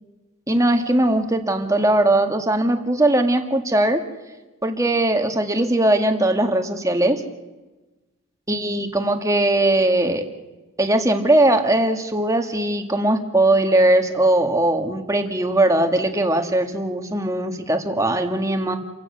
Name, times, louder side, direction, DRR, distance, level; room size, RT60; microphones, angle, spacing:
voice 1, 0.5-4.0 4.6-7.2 8.5-10.2 10.8-18.8, right 1 dB, 15° right, 6 dB, 1.8 m, -19 dB
29.5 x 16.5 x 6.7 m, 1.2 s
head